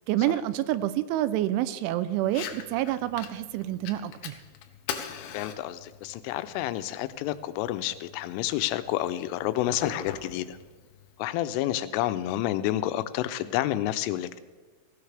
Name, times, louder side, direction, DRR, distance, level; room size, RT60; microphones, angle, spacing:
voice 1, 0.1-4.3, right 13 dB, 85° right, 14 dB, 3.0 m, -28 dB
Fire, 2.2-11.2, left 8 dB, 75° left, 2.5 m, -42 dB
voice 2, 5.3-10.6 11.2-14.4, left 13 dB, 90° left, 12 dB, 3.2 m, -29 dB
17.5 x 16.5 x 3.4 m, 1.4 s
omnidirectional pair, 5.6 m